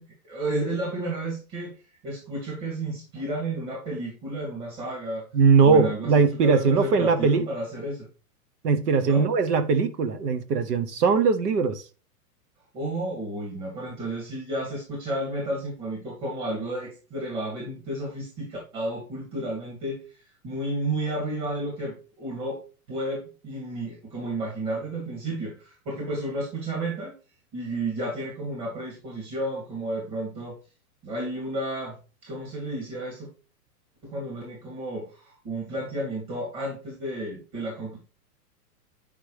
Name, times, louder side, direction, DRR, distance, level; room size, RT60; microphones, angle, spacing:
voice 1, 0.0-5.2 5.6-8.1 9.0-9.3 12.7-22.6 22.9-27.1 27.5-30.6 31.0-32.0 32.2-33.3 34.0-38.0, right 1 dB, 35° right, 2.9 m, -32 dB
voice 2, 5.3-7.5 8.6-11.9, right 5 dB, 80° right, 1.1 m, -20 dB
9.1 x 5.2 x 3.3 m
hypercardioid pair, 160°, 47 cm